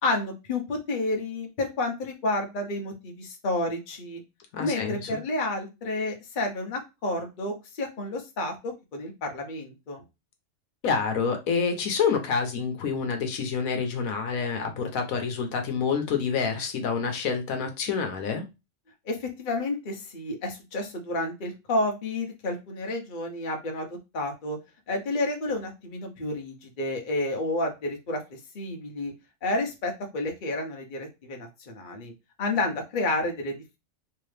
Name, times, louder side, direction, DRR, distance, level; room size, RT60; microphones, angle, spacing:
voice 1, 0.0-4.2 4.6-10.0 19.1-23.9 24.1-24.6 24.9-28.2 28.5-29.1 29.4-32.1 32.4-33.8, left 2 dB, 40° left, 0.9 m, -30 dB
voice 2, 4.5-5.2 10.8-18.4, left 5 dB, 80° left, 1.2 m, -27 dB
3.3 x 2.9 x 3.2 m
omnidirectional pair, 1.4 m